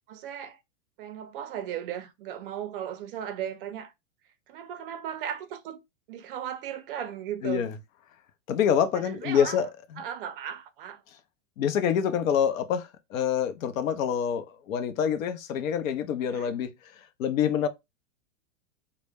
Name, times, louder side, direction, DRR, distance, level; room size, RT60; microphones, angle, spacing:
voice 1, 0.1-0.6 1.0-3.9 4.5-5.8 6.1-7.7 8.9-9.6 10.0-11.0 16.3-16.5, right 9 dB, 45° right, 0.4 m, -36 dB
voice 2, 7.4-7.8 8.5-10.0 11.6-16.9 17.2-17.7, left 8 dB, 85° left, 0.6 m, -26 dB
2.1 x 2.1 x 3.2 m
supercardioid pair, 145°, 39 cm